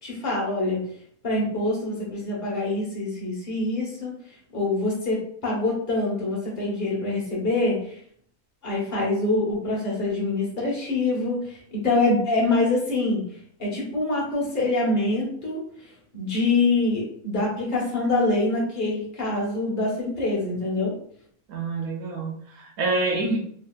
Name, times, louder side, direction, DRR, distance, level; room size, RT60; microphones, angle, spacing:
voice 1, 0.0-0.8 1.2-4.1 4.5-8.0 8.6-13.2 13.6-20.9 23.2-23.4, left 2 dB, 15° left, -5 dB, 0.8 m, -25 dB
voice 2, 21.5-23.4, right 3 dB, 75° right, -1 dB, 1.0 m, -27 dB
2.9 x 2.6 x 2.4 m, 0.63 s
omnidirectional pair, 1.6 m